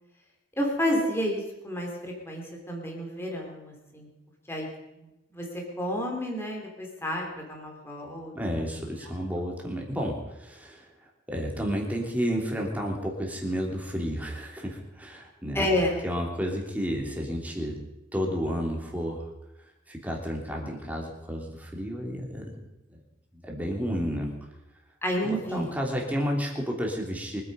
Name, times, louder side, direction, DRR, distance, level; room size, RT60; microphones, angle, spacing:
voice 1, 0.6-4.1 4.5-4.7 5.0-9.1 15.5-16.0 25.0-25.7, equal, 15° left, 0 dB, 3.1 m, -30 dB
voice 2, 8.3-10.9 11.3-15.7 16.0-17.8 18.1-19.3 19.9-22.5 22.9-23.0 23.3-24.4 25.2-27.4, equal, 10° right, -1 dB, 3.2 m, -31 dB
24.5 x 9.7 x 5.4 m, 0.97 s
head